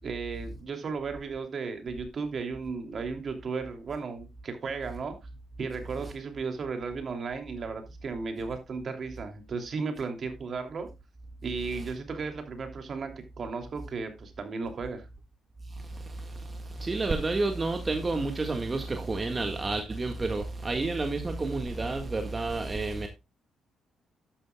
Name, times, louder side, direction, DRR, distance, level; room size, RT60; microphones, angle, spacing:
voice 1, 0.0-5.2 5.6-10.9 11.4-15.1, right 4 dB, 50° right, 2.9 m, -35 dB
voice 2, 15.7-23.1, right 3 dB, 30° right, 1.7 m, -30 dB
12.5 x 10.5 x 2.3 m
hypercardioid pair, 50°, 0 cm